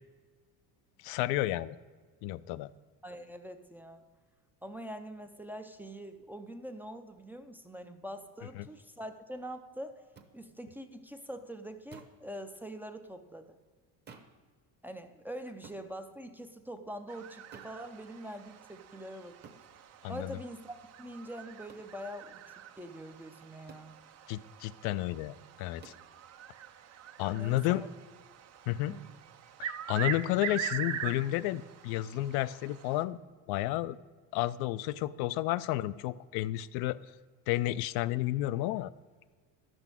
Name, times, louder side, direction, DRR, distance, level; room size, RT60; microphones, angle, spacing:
voice 1, 1.0-1.8 2.2-2.7 8.6-8.7 20.0-20.4 24.3-25.9 27.2-27.8 28.7-28.9 29.6-33.2 33.5-34.0 34.3-37.0 37.5-38.9, left 15 dB, 70° left, 15 dB, 0.5 m, -31 dB
voice 2, 3.0-4.0 4.6-10.0 10.3-13.6 14.8-19.4 20.1-22.4 22.8-24.0 27.3-27.9 28.9-29.1, equal, 5° right, 5 dB, 0.4 m, -44 dB
sound 1, 10.2-10.3 11.9-12.2 14.1-14.4 15.6-15.9 17.5-17.8 19.4-19.7 21.7-21.9 23.7-23.9 25.8-26.1, right 5 dB, 25° right, 1.0 m, -52 dB
sound 2, 17.1-33.0, right 9 dB, 40° right, 0.7 m, -43 dB
11.0 x 6.2 x 8.8 m, 1.5 s
cardioid pair, 140°, 39 cm